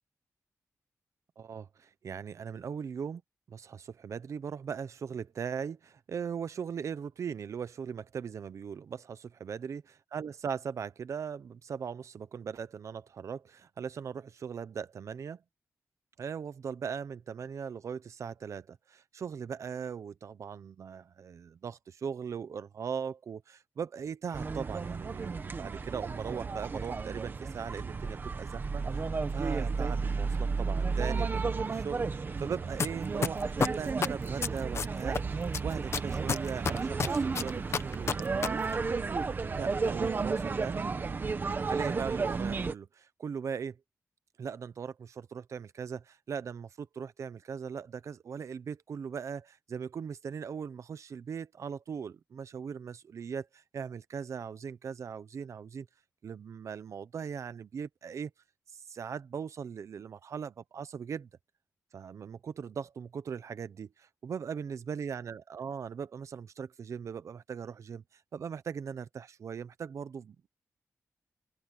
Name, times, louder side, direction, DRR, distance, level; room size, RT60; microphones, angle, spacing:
voice 1, 1.4-3.2 3.5-15.4 16.2-28.8 29.3-39.1 39.6-40.9 41.7-43.8 44.4-55.9 56.2-58.3 58.7-61.3 61.9-70.5, right 6 dB, 60° right, 0.9 m, -39 dB
sound 1, 24.3-42.7, right 4 dB, 35° right, 1.4 m, -33 dB
sound 2, 32.8-32.9 33.2-35.2 35.5-38.5 38.7-38.8, left 6 dB, 50° left, 1.0 m, -29 dB
wide cardioid pair, 165°, 6 cm